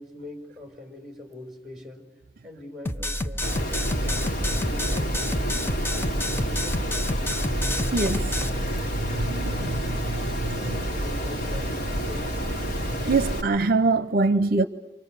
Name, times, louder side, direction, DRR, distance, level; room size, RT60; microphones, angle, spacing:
voice 1, 0.0-2.1 2.4-6.3 6.6-6.9 9.5-12.3, left 2 dB, ahead, 4.8 m, -44 dB
sound 1, 2.9-8.5, left 1 dB, 15° left, 0.8 m, -29 dB
Water, 3.4-13.4, equal, 55° left, 3.7 m, -29 dB
voice 2, 7.9-8.3 9.1-10.8 13.0-14.6, right 3 dB, 55° right, 0.8 m, -24 dB
29.5 x 26.0 x 6.7 m
head